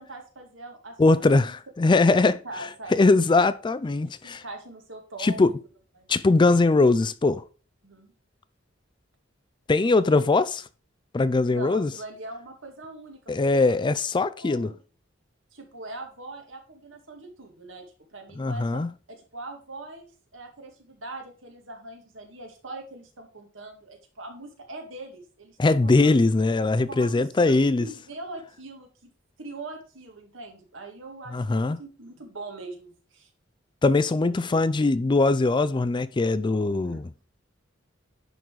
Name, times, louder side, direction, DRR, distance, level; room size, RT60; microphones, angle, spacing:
voice 1, 0.0-1.0 1.3-1.5 1.9-2.2 2.4-3.0 4.0-5.5 6.0-6.1 7.8-8.1 10.0-10.2 11.5-13.2 13.5-13.7 14.4-14.8 15.5-17.8 18.1-18.8 19.1-26.2 26.9-29.1 29.4-33.3 34.2-34.6 36.7-37.0, right 2 dB, 70° right, 2.1 m, -42 dB
voice 2, 1.0-2.3 2.9-4.4 5.2-5.5 6.1-7.4 9.7-10.6 11.1-11.9 13.3-14.7 18.4-18.9 25.6-27.9 31.3-31.8 33.8-37.1, left 3 dB, 25° left, 0.4 m, -21 dB
10.5 x 3.9 x 4.7 m
head